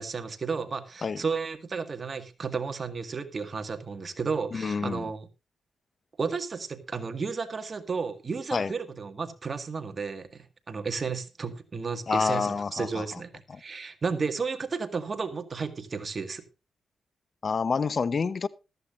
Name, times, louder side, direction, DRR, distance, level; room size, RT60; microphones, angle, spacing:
voice 1, 0.0-5.3 6.2-16.4, right 5 dB, 45° right, 1.9 m, -33 dB
voice 2, 4.5-5.1 8.5-8.7 12.1-13.2 13.5-13.6 17.4-18.5, left 5 dB, 50° left, 0.9 m, -28 dB
14.5 x 13.5 x 2.5 m
cardioid pair, 70°, 0 cm